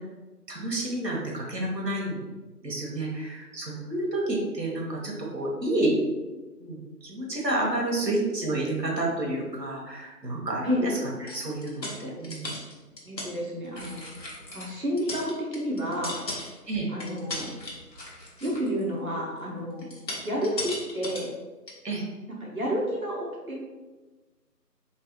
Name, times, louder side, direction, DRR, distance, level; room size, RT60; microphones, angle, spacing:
voice 1, 0.5-2.3 2.6-6.0 6.6-10.9 11.2-12.6 16.7-16.9 21.8-22.0, right 1 dB, 85° right, -3 dB, 1.3 m, -30 dB
sound 1, 11.3-13.3 13.6-14.7 15.0-16.7 17.0-18.8 19.8-21.3 21.7-21.8, left 2 dB, 90° left, 1.3 m, -37 dB
voice 2, 13.1-14.0 14.5-16.3 16.9-17.5 18.4-19.9 20.2-21.3 22.3-23.7, equal, 60° right, -3 dB, 0.9 m, -30 dB
3.2 x 3.2 x 3.1 m, 1.2 s
figure-of-eight pair, 175°, 49 cm